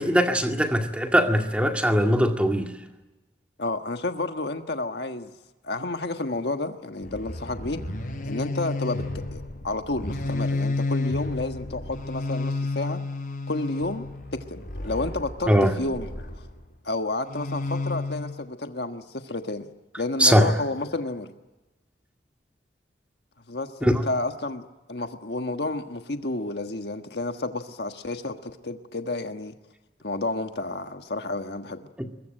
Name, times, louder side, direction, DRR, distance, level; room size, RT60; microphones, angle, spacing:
voice 1, 0.0-2.7 15.5-15.8 20.2-20.5 23.8-24.1, equal, 5° right, 2.1 m, -20 dB
voice 2, 3.6-5.3 5.6-7.8 8.2-9.0 9.3-13.0 13.5-14.1 14.3-16.3 16.8-19.7 20.0-21.3 23.5-29.5 30.0-31.9, left 2 dB, 65° left, 1.5 m, -31 dB
sound 1, 7.0-16.6 17.2-18.3, left 2 dB, 45° left, 6.6 m, -31 dB
23.0 x 21.5 x 9.0 m
head